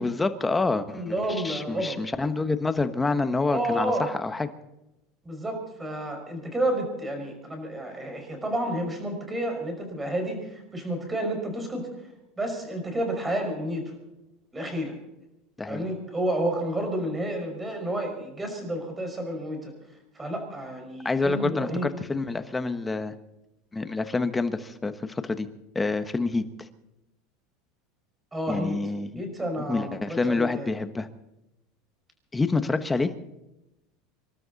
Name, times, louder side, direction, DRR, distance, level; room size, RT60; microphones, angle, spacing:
voice 1, 0.0-4.5 15.6-15.8 21.0-23.1 23.7-25.5 25.7-26.7 28.5-29.2 29.7-31.1 32.3-33.1, left 3 dB, 10° left, 10 dB, 1.2 m, -27 dB
voice 2, 0.9-2.0 3.5-4.1 5.2-11.9 12.4-13.9 14.5-14.9 15.7-19.7 20.2-21.9 28.3-28.8 29.2-30.7, right 1 dB, 15° right, 4 dB, 5.6 m, -30 dB
27.0 x 12.5 x 4.1 m, 0.93 s
supercardioid pair, 130°, 0 cm